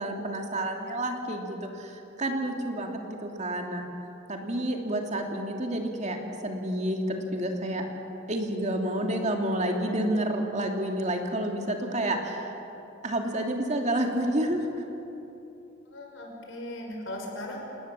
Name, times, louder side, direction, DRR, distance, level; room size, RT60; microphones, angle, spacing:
voice 1, 0.0-3.9 4.3-6.2 6.4-7.9 8.3-12.5 13.0-14.7, right 1 dB, 40° right, 2 dB, 2.6 m, -29 dB
voice 2, 15.9-17.6, left 1 dB, 75° left, 1 dB, 5.5 m, -38 dB
28.5 x 19.5 x 7.5 m, 2.9 s
head